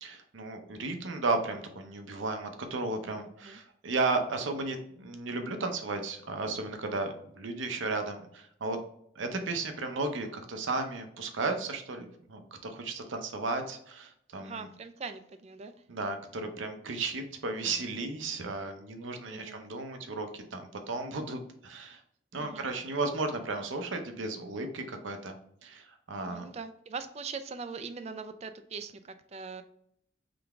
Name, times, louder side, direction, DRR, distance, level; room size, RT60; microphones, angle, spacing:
voice 1, 0.0-8.8 9.2-14.7 15.9-22.0 22.3-25.4 25.6-26.4, right 3 dB, 80° right, 6 dB, 0.7 m, -34 dB
voice 2, 14.4-15.7 19.3-19.6 22.4-22.7 26.3-29.6, right 5 dB, 35° right, 9 dB, 0.3 m, -41 dB
3.8 x 3.4 x 3.5 m, 0.70 s
head